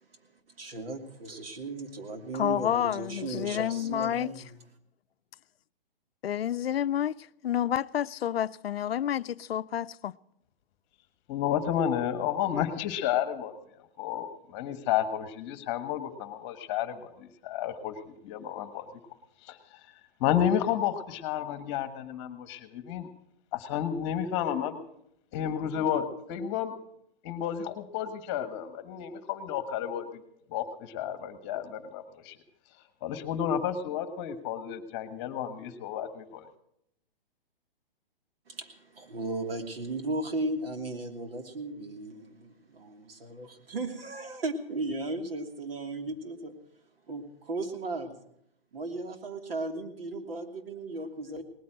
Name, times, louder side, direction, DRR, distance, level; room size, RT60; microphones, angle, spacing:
voice 1, 0.6-4.6 38.5-46.5 47.1-48.2 48.7-51.4, right 2 dB, 75° right, 2.9 m, -36 dB
voice 2, 2.3-4.3 6.2-7.1 7.4-10.2, left 10 dB, 80° left, 0.6 m, -29 dB
voice 3, 11.3-13.5 14.0-18.9 19.4-19.8 20.2-23.1 23.5-24.8 25.3-26.8 27.2-30.2 30.5-32.4 33.0-36.5, left 9 dB, 30° left, 1.4 m, -31 dB
19.0 x 9.4 x 7.8 m
hypercardioid pair, 150°, 29 cm